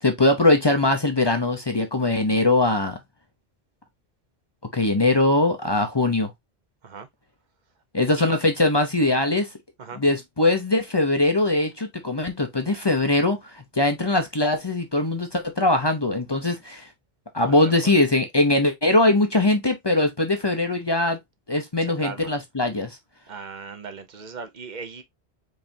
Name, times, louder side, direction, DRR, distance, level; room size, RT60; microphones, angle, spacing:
voice 1, 0.0-3.0 4.7-6.3 7.9-9.5 10.0-16.9 17.3-21.2 21.5-23.0, left 2 dB, 30° left, 0.7 m, -21 dB
voice 2, 23.3-25.0, right 5 dB, 50° right, 0.8 m, -38 dB
4.8 x 3.3 x 2.7 m
omnidirectional pair, 1.0 m